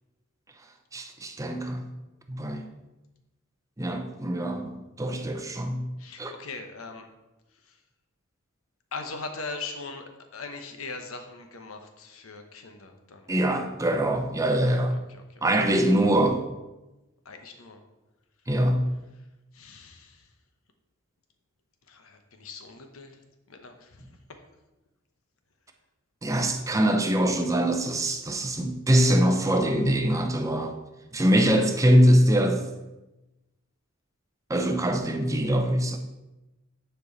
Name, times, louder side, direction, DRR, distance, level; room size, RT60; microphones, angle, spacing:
voice 1, 0.9-1.9 2.3-2.7 3.8-5.9 6.2-6.3 13.3-15.0 15.4-16.4 18.5-18.8 26.2-30.7 31.1-32.7 34.5-36.0, right 1 dB, 15° right, 5 dB, 0.6 m, -23 dB
voice 2, 6.0-7.1 7.6-7.8 8.9-13.3 14.5-15.4 17.2-17.8 19.5-20.3 21.9-24.1, left 3 dB, 85° left, 5 dB, 1.0 m, -41 dB
10.0 x 4.6 x 4.0 m, 1.0 s
head